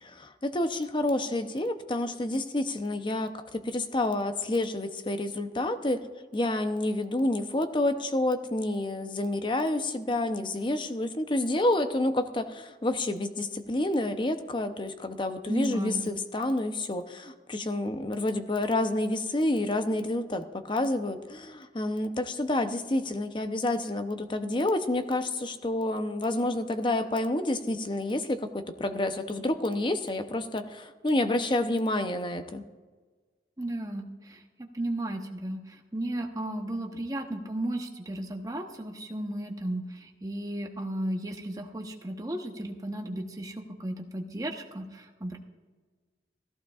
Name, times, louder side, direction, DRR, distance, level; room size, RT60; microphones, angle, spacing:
voice 1, 0.0-6.1 6.3-32.6, left 1 dB, 30° left, 8 dB, 0.7 m, -29 dB
voice 2, 15.5-16.1 33.6-34.4 34.7-45.4, right 1 dB, 20° right, 3 dB, 1.0 m, -34 dB
16.5 x 14.5 x 2.4 m, 1.4 s
head